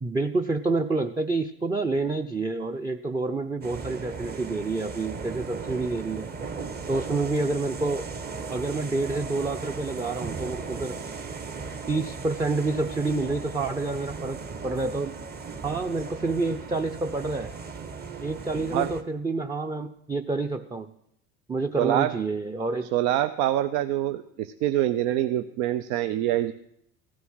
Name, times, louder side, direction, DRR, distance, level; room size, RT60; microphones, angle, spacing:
voice 1, 0.0-6.3 6.9-8.1 8.5-11.0 11.9-14.4 14.6-15.1 15.6-17.5 18.2-20.9 21.5-22.9, right 3 dB, 15° right, 6 dB, 0.6 m, -28 dB
sound 1, 3.6-19.0, right 4 dB, 30° right, 1.5 m, -37 dB
voice 2, 21.8-22.1 22.9-26.5, right 13 dB, 70° right, 11 dB, 0.7 m, -25 dB
16.0 x 9.5 x 6.3 m, 0.75 s
supercardioid pair, 100°, 30 cm